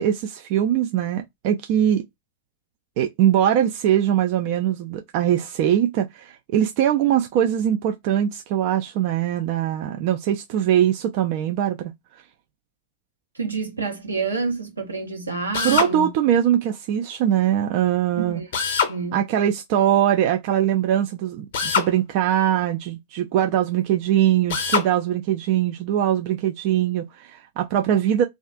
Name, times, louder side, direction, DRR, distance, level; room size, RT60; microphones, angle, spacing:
voice 1, 0.0-2.0 3.0-11.9 15.6-18.4 19.1-28.2, right 10 dB, 45° right, 0.3 m, -22 dB
voice 2, 13.3-16.1 18.2-18.5 18.9-19.3, right 4 dB, 80° right, 0.9 m, -28 dB
Drill, 15.5-15.9 18.5-19.0 21.5-21.9 24.5-24.9, left 6 dB, 55° left, 0.7 m, -23 dB
2.3 x 2.3 x 2.3 m
figure-of-eight pair, 90°, 0 cm